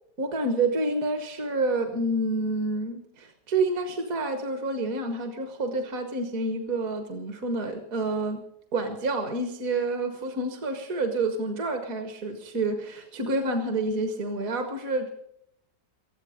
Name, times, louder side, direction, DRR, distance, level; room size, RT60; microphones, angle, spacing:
voice 1, 0.2-8.4 8.7-15.1, right 2 dB, 55° right, 5 dB, 1.7 m, -28 dB
19.5 x 14.0 x 5.0 m, 0.76 s
omnidirectional pair, 1.9 m